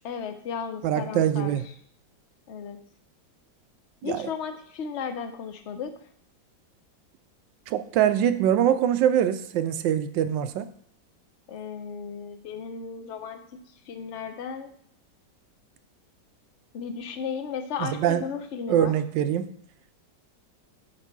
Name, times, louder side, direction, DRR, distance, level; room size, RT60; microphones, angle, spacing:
voice 1, 0.0-1.6 2.5-2.8 4.0-5.9 11.5-13.4 13.9-14.7 16.7-18.9, left 6 dB, 60° left, 7 dB, 0.7 m, -34 dB
voice 2, 0.8-1.6 4.0-4.3 7.7-10.7 17.8-18.2 18.7-19.5, right 10 dB, 80° right, 11 dB, 1.3 m, -23 dB
8.2 x 3.4 x 5.9 m, 0.63 s
omnidirectional pair, 2.0 m